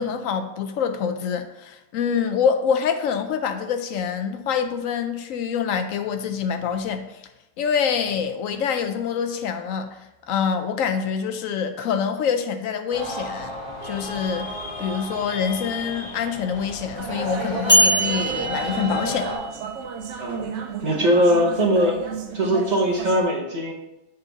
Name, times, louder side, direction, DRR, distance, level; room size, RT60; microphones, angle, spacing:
voice 1, 0.0-7.2 7.6-10.0 10.3-13.5 13.8-19.3, left 7 dB, 70° left, 8 dB, 0.9 m, -26 dB
sound 1, 12.9-19.4, left 1 dB, 30° left, 1.6 m, -33 dB
sound 2, 16.9-23.2, right 6 dB, 65° right, 0.9 m, -33 dB
sound 3, 17.7-19.8, equal, 10° left, 1.4 m, -22 dB
voice 2, 20.8-22.0 22.3-23.7, equal, 35° right, -1 dB, 0.9 m, -20 dB
7.9 x 4.0 x 4.0 m, 0.95 s
omnidirectional pair, 1.5 m